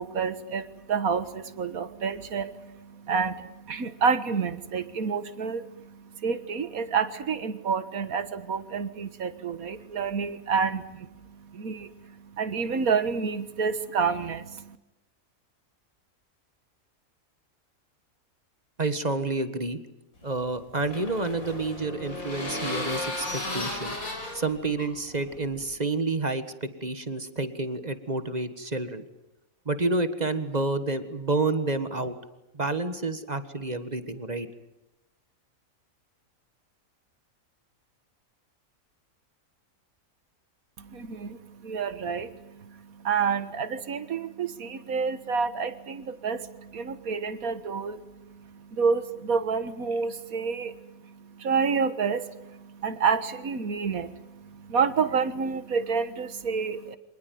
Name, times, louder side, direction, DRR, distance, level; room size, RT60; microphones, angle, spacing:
voice 1, 0.0-14.8 40.8-57.0, right 5 dB, 85° right, 12 dB, 1.9 m, -29 dB
voice 2, 18.8-19.8 20.2-24.0 24.3-29.0 29.6-32.2 32.5-34.5, right 3 dB, 30° right, 10 dB, 1.6 m, -29 dB
sound 1, 20.2-25.7, left 2 dB, 75° left, 6.0 m, -35 dB
26.0 x 20.0 x 9.4 m, 0.96 s
omnidirectional pair, 1.5 m